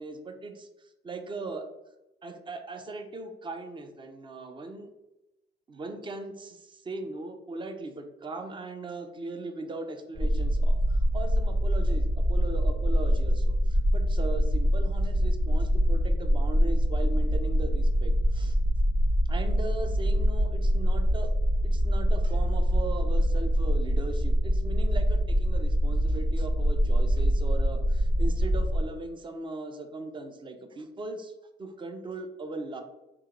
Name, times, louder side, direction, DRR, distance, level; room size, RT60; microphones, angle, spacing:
voice 1, 0.0-1.6 2.2-4.9 5.7-18.6 19.3-21.3 21.6-31.3 31.6-32.8, right 2 dB, 25° right, 6 dB, 0.5 m, -39 dB
sound 1, 10.2-28.8, equal, 5° right, 1.1 m, -24 dB
3.7 x 2.9 x 3.0 m, 0.96 s
cardioid pair, 90°, 20 cm